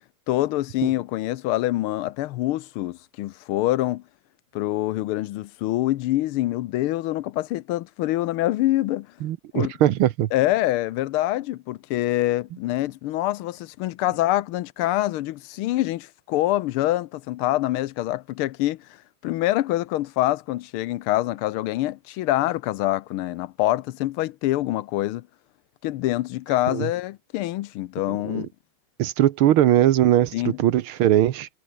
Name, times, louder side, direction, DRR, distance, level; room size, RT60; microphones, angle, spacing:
voice 1, 0.3-4.0 4.5-9.1 9.5-9.7 10.3-18.9 19.2-25.2 25.8-28.5 30.3-30.6, left 15 dB, 80° left, 1.6 m, -25 dB
voice 2, 9.2-10.3 26.7-26.9 28.1-28.4 29.0-31.5, right 12 dB, 75° right, 1.7 m, -20 dB
omnidirectional pair, 2.4 m